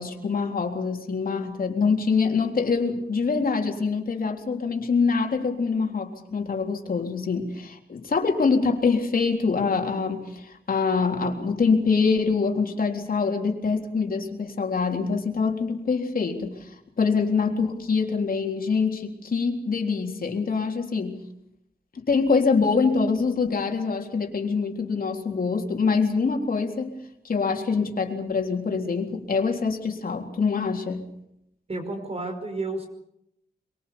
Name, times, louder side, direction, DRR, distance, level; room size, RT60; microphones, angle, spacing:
voice 1, 0.0-21.2 21.9-26.9 27.2-31.0, left 4 dB, 60° left, 3 dB, 3.8 m, -25 dB
voice 2, 31.7-32.9, right 2 dB, 35° right, 6 dB, 5.3 m, -31 dB
24.5 x 22.5 x 7.1 m, 0.79 s
wide cardioid pair, 95°, 17 cm